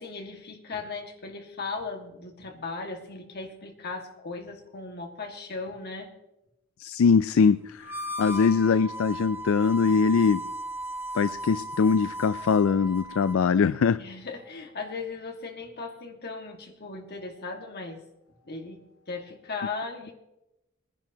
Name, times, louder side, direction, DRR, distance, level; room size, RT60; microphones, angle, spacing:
voice 1, 0.0-6.1 14.0-18.0 18.3-20.1, left 4 dB, 50° left, 3 dB, 1.9 m, -37 dB
voice 2, 6.8-10.4 11.1-14.0, left 5 dB, 70° left, 14 dB, 0.4 m, -22 dB
Harmonica, 7.8-13.5, right 1 dB, 10° right, 1.4 m, -36 dB
22.5 x 10.5 x 2.9 m, 0.92 s
head